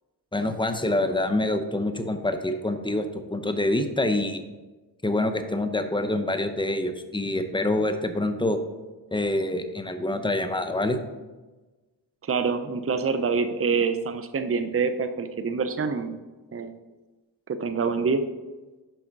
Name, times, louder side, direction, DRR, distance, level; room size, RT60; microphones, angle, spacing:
voice 1, 0.3-4.4 5.0-8.6 9.1-11.0, left 1 dB, 10° left, 8 dB, 0.8 m, -26 dB
voice 2, 12.2-16.2 16.5-16.7 17.5-18.2, right 5 dB, 30° right, 10 dB, 0.6 m, -26 dB
6.2 x 5.6 x 5.3 m, 1.2 s
cardioid pair, 50°, 44 cm